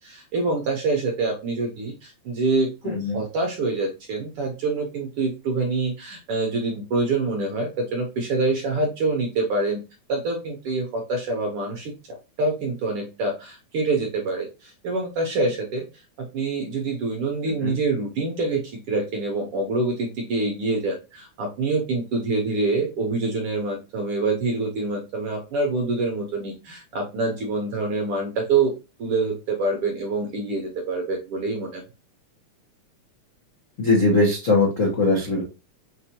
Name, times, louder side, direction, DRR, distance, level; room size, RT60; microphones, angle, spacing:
voice 1, 0.0-9.8 10.1-15.8 16.2-28.7 29.0-31.8, right 3 dB, 70° right, 1 dB, 1.4 m, -26 dB
voice 2, 2.8-3.2 17.6-17.8 33.8-35.4, left 2 dB, 60° left, -3 dB, 0.8 m, -20 dB
5.9 x 2.6 x 2.8 m, 0.29 s
omnidirectional pair, 3.3 m